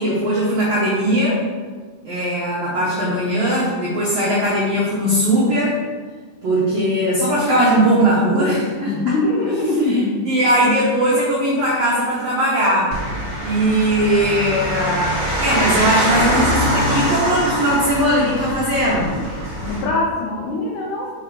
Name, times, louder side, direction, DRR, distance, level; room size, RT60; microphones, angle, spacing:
voice 1, 0.0-1.4 2.0-5.8 6.4-8.9 9.9-10.0 10.3-12.9 13.4-19.1, right 1 dB, 85° right, -7 dB, 1.4 m, -19 dB
voice 2, 8.9-10.3 19.7-21.1, left 2 dB, 90° left, -2 dB, 1.7 m, -22 dB
sound 1, 12.9-19.8, equal, 45° right, 1.5 m, -23 dB
5.5 x 4.6 x 3.8 m, 1.5 s
omnidirectional pair, 4.5 m